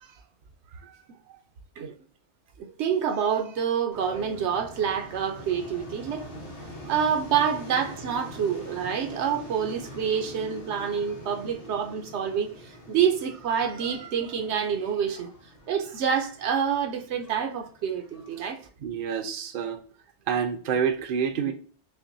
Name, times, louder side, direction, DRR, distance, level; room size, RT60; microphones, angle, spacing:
voice 1, 2.6-6.3 6.9-15.3 15.7-18.6, right 7 dB, 75° right, 0.9 m, -27 dB
sound 1, 3.9-18.5, equal, 85° left, 1.5 m, -44 dB
voice 2, 18.8-19.8 20.3-21.5, right 7 dB, 60° right, 0.7 m, -28 dB
5.8 x 2.1 x 2.6 m
omnidirectional pair, 1.2 m